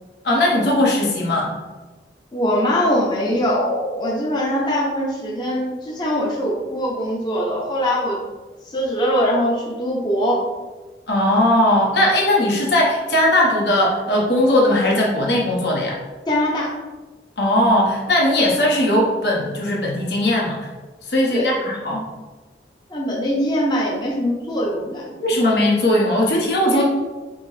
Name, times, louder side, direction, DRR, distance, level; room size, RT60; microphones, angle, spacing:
voice 1, 0.2-1.5 11.1-16.0 17.4-20.7 21.1-22.0 25.2-26.8, left 1 dB, 70° left, -2 dB, 1.0 m, -18 dB
voice 2, 2.3-8.2 8.6-10.4 16.3-16.7 21.3-21.6 21.9-22.0 22.9-25.1 26.7-26.8, equal, 25° left, -4 dB, 0.5 m, -22 dB
5.9 x 2.0 x 3.1 m, 1.2 s
head